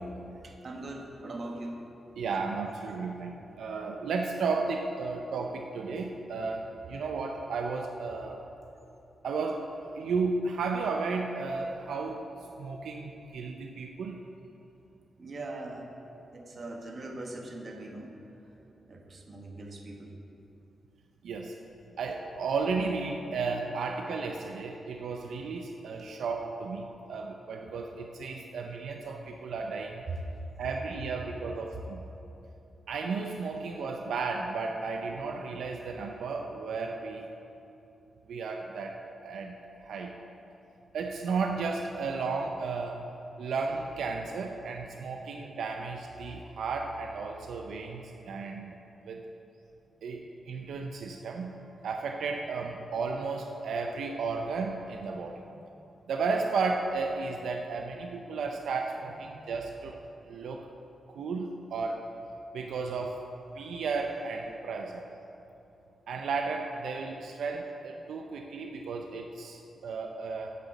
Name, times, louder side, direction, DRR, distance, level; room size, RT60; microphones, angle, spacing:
voice 1, 0.4-1.8 15.2-15.9 16.3-18.1 18.9-20.1 30.1-30.2 50.1-50.2 55.1-55.5 59.0-59.1, right 2 dB, 45° right, 1 dB, 1.2 m, -41 dB
voice 2, 2.2-8.4 9.2-12.3 12.6-14.2 21.2-21.6 22.0-30.0 30.6-32.0 32.9-37.3 38.3-40.2 40.9-43.0 43.4-48.7 49.0-49.2 50.0-55.5 56.1-60.0 60.2-60.7 61.1-62.0 62.5-63.2 63.5-65.1 66.1-70.6, right 4 dB, 85° right, 3 dB, 0.5 m, -34 dB
8.1 x 6.7 x 7.3 m, 2.9 s
wide cardioid pair, 110°, 0 cm